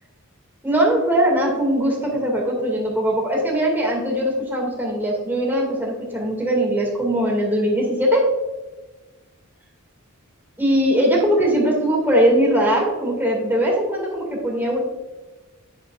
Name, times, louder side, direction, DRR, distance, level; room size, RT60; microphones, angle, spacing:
voice 1, 0.6-8.3 10.6-14.8, right 1 dB, 10° right, -2 dB, 2.3 m, -20 dB
10.5 x 8.2 x 2.5 m, 1.1 s
head